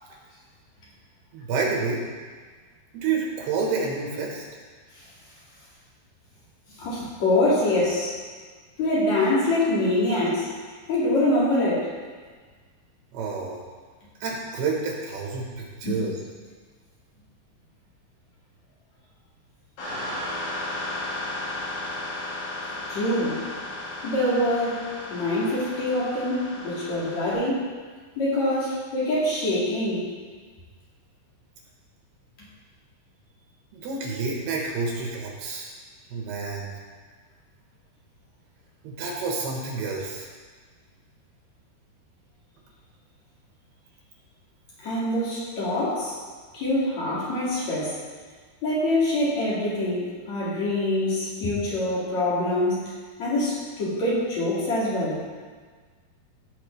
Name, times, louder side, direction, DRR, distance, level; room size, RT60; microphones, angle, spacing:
voice 1, 1.3-2.0 2.9-4.4 13.1-13.6 14.2-16.2 33.7-35.7 36.1-36.7 38.8-40.3, right 4 dB, 80° right, -2 dB, 3.2 m, -29 dB
voice 2, 6.8-8.1 8.8-10.5 10.9-11.9 15.8-16.0 22.9-23.4 24.0-24.8 25.1-27.6 28.2-30.1 44.8-46.1 46.5-48.0 48.6-52.8 53.2-55.2, left 1 dB, 45° left, -8 dB, 3.2 m, -24 dB
sound 1, 19.8-27.3, left 2 dB, 85° left, 4.8 m, -34 dB
16.0 x 6.0 x 3.3 m, 1.5 s
omnidirectional pair, 4.7 m